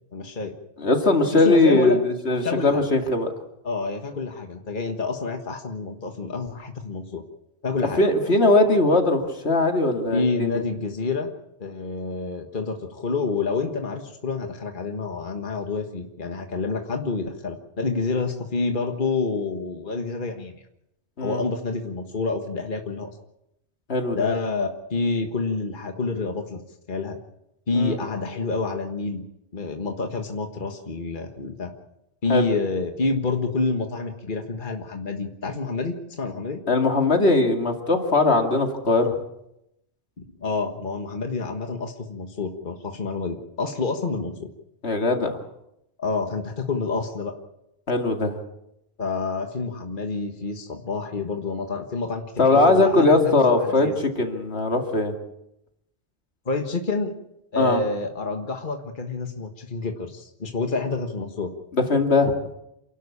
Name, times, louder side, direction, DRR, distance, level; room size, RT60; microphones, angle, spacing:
voice 1, 0.1-0.5 1.3-2.0 2.4-2.8 3.6-7.2 7.6-8.0 10.1-11.3 11.6-20.5 21.2-23.1 24.1-26.6 26.9-27.2 27.7-29.2 29.5-31.7 32.2-36.6 40.2-44.5 46.0-47.3 49.0-54.0 56.5-57.1 57.5-61.5, left 3 dB, 50° left, 4 dB, 1.7 m, -28 dB
voice 2, 0.8-3.3 8.0-10.5 21.2-21.4 23.9-24.3 27.7-28.0 32.3-32.5 36.7-39.1 44.8-45.4 47.9-48.4 52.4-55.1 57.6-57.8 61.7-62.3, left 2 dB, 80° left, 4 dB, 2.6 m, -20 dB
28.0 x 12.0 x 8.5 m, 0.84 s
omnidirectional pair, 1.1 m